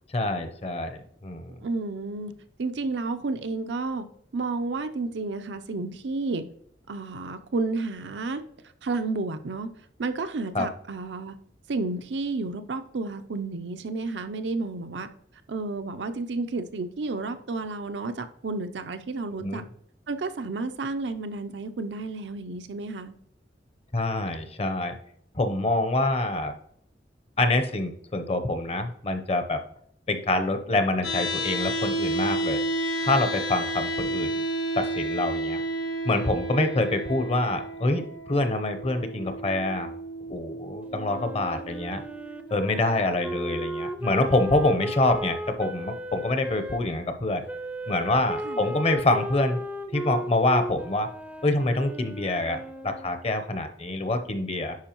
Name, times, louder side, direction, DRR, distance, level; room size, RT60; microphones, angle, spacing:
voice 1, 0.1-1.6 10.5-10.7 19.4-19.6 23.9-24.9 25.3-26.5 27.4-29.6 30.1-32.6 33.0-34.3 34.7-35.6 36.0-39.9 40.3-42.0 42.5-47.4 47.9-49.6 49.9-51.1 51.4-54.8, left 2 dB, 35° left, 0.7 m, -26 dB
voice 2, 1.6-2.3 2.6-4.1 4.3-6.4 6.9-8.4 8.8-9.7 10.0-11.4 11.7-15.1 15.5-19.6 20.1-23.1 48.4-48.8, right 3 dB, 80° right, 0.6 m, -31 dB
sound 1, 31.0-43.1, right 1 dB, 75° left, 1.4 m, -31 dB
Wind instrument woodwind instrument, 40.9-46.8 47.5-53.3, equal, 5° right, 0.5 m, -36 dB
10.5 x 4.5 x 3.0 m
head